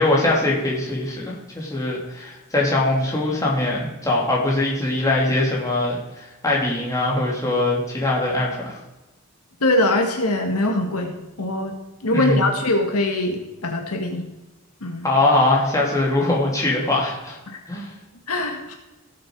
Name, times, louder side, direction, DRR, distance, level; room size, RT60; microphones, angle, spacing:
voice 1, 0.0-8.8 12.1-12.5 15.0-17.4 17.7-17.9, left 2 dB, 15° left, -4 dB, 2.9 m, -22 dB
voice 2, 9.6-11.7 12.0-14.2 14.8-15.0 17.5-17.6 18.3-18.8, left 1 dB, 90° left, 3 dB, 1.8 m, -22 dB
17.0 x 7.7 x 4.7 m, 1.0 s
head